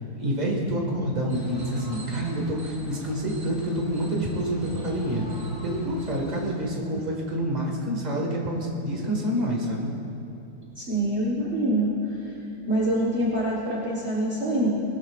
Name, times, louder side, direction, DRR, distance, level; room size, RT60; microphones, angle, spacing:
voice 1, 0.2-5.2 5.6-9.9, equal, 25° right, -1 dB, 1.8 m, -27 dB
sound 1, 1.3-6.6, right 2 dB, 90° right, 2.4 m, -40 dB
voice 2, 10.8-12.3 12.7-14.7, right 1 dB, 45° right, -6 dB, 1.6 m, -25 dB
20.0 x 12.5 x 2.4 m, 2.8 s
omnidirectional pair, 1.7 m